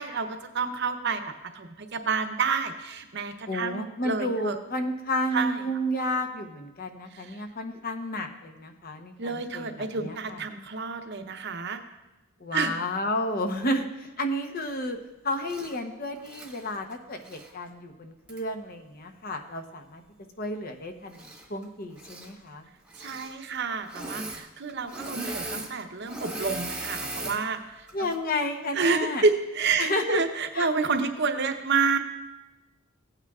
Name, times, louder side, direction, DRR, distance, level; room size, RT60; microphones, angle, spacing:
voice 1, 0.0-4.6 5.3-5.6 7.1-7.4 9.2-11.8 12.5-12.7 23.0-27.9 28.7-32.0, right 4 dB, 55° right, 6 dB, 0.8 m, -29 dB
voice 2, 3.5-10.4 12.4-15.0 15.2-20.0 20.4-22.7 27.9-29.2 29.8-30.2 30.5-30.7, left 1 dB, 45° left, 6 dB, 0.9 m, -31 dB
Engine / Mechanisms, 15.4-15.8 16.2-17.5 18.3-18.4 21.1-21.6 21.9-22.3 22.9-23.3 23.8-24.4 24.7-27.4 27.9-28.2, right 2 dB, 5° right, 1.2 m, -38 dB
16.0 x 8.9 x 2.4 m, 1.0 s
head